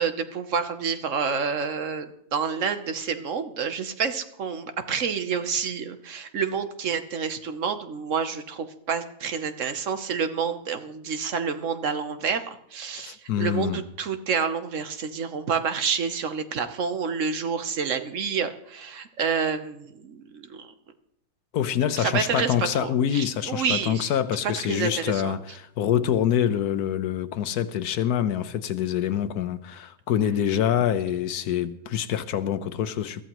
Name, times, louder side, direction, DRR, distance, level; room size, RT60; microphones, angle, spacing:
voice 1, 0.0-20.7 22.0-24.1 24.4-25.4, right 6 dB, 60° right, 1.2 m, -28 dB
voice 2, 13.0-13.8 21.5-33.2, left 9 dB, 85° left, 1.3 m, -26 dB
21.5 x 14.5 x 3.0 m
omnidirectional pair, 1.6 m